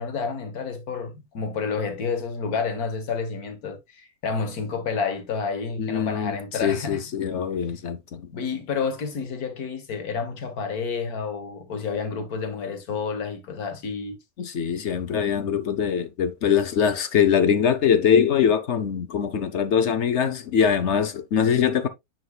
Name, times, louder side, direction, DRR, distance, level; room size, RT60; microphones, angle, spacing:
voice 1, 0.0-7.0 8.3-14.2, left 5 dB, 80° left, 1.8 m, -30 dB
voice 2, 5.8-6.4 6.6-8.3 14.4-21.9, left 7 dB, 55° left, 0.9 m, -22 dB
9.6 x 4.9 x 2.2 m
omnidirectional pair, 1.6 m